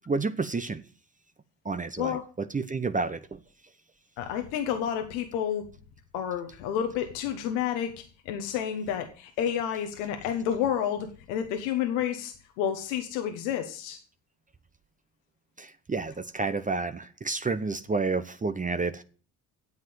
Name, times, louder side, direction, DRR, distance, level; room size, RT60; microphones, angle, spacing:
voice 1, 0.1-0.8 1.6-3.4 15.6-19.0, right 4 dB, 20° right, 0.9 m, -30 dB
voice 2, 4.2-5.6 6.1-7.9 8.2-14.0, left 9 dB, 90° left, 1.3 m, -30 dB
9.5 x 7.6 x 7.9 m
supercardioid pair, 70°, 37 cm